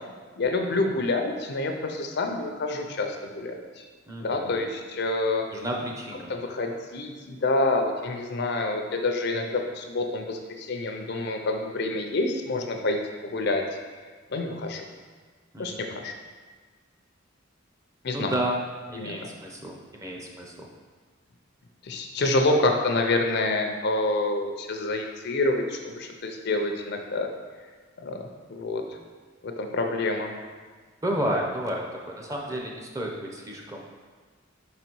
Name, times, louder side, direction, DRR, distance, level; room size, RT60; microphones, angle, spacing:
voice 1, 0.4-3.8 4.2-5.4 6.3-13.6 14.3-14.9 15.6-16.1 18.0-18.4 18.9-19.1 21.8-27.3 28.0-29.0 29.4-30.3, left 2 dB, 60° left, 4 dB, 0.6 m, -27 dB
voice 2, 4.1-4.7 5.5-6.3 15.5-15.8 18.1-18.6 18.9-20.7 31.0-33.9, right 1 dB, 15° right, -1 dB, 0.7 m, -31 dB
5.1 x 4.0 x 4.6 m, 1.5 s
head